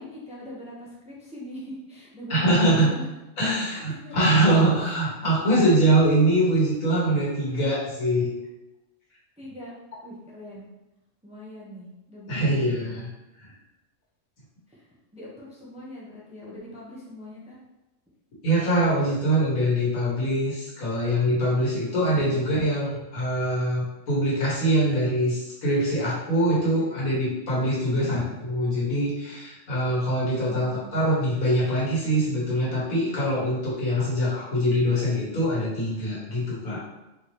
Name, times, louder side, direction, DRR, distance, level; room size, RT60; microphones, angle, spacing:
voice 1, 0.0-3.0 3.5-3.6 4.0-4.2 4.8-4.9 7.4-7.8 9.4-9.7 10.0-10.7 11.2-12.8 14.7-17.6 27.9-28.3 30.5-30.9, equal, 5° right, -5 dB, 0.6 m, -42 dB
voice 2, 2.3-2.9 3.4-8.3 12.3-13.1 13.4-13.5 18.4-36.8, right 1 dB, 90° left, -7 dB, 1.9 m, -23 dB
4.6 x 2.9 x 3.1 m, 0.98 s
omnidirectional pair, 1.4 m